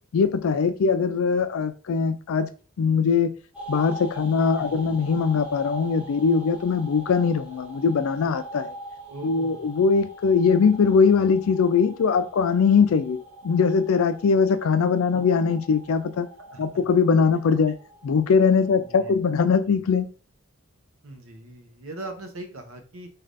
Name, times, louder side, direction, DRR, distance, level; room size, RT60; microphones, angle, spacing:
voice 1, 0.1-2.5 2.8-3.4 3.7-8.8 9.2-13.2 13.4-16.3 16.6-17.8 18.0-20.1, left 5 dB, 80° left, 0.4 m, -21 dB
sound 1, 3.5-18.9, right 1 dB, 5° right, 0.6 m, -43 dB
voice 2, 4.6-4.9 9.1-9.7 15.1-15.2 16.5-16.7 18.7-19.1 21.0-23.1, right 2 dB, 80° right, 0.6 m, -40 dB
3.3 x 2.4 x 2.5 m
head